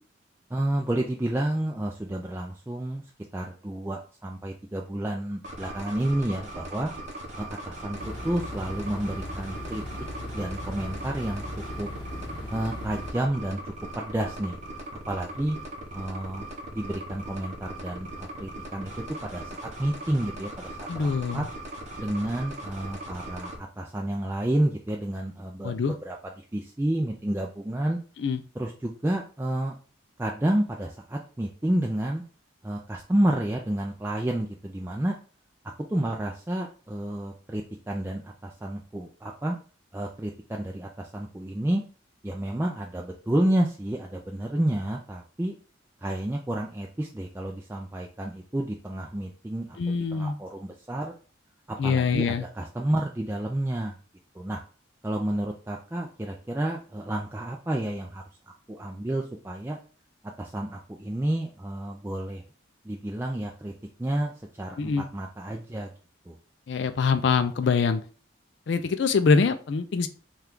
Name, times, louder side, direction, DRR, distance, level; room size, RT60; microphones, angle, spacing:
voice 1, 0.5-3.0 3.3-6.9 7.4-8.0 8.2-9.8 10.3-11.4 11.8-11.9 12.5-14.6 15.1-15.6 15.9-16.5 16.7-18.9 19.2-21.4 22.0-25.7 26.0-26.2 26.5-28.0 28.6-29.8 30.2-32.2 32.6-35.1 35.9-39.6 39.9-41.8 42.2-45.6 46.0-49.8 50.1-51.1 51.7-54.0 54.3-54.6 55.0-58.2 58.7-59.8 60.4-62.4 62.8-63.7 64.0-65.9 66.3-66.4, right 1 dB, 10° right, 0 dB, 0.3 m, -30 dB
sound 1, 5.4-23.6, right 1 dB, 35° right, 0.8 m, -39 dB
sound 2, 7.9-13.1, left 1 dB, 20° left, 1.2 m, -38 dB
voice 2, 20.9-21.5 25.6-25.9 28.2-28.4 49.8-50.4 51.8-52.4 64.8-65.1 66.7-68.0 68.7-70.1, left 5 dB, 60° left, 9 dB, 0.3 m, -24 dB
5.6 x 2.4 x 3.6 m, 0.38 s
head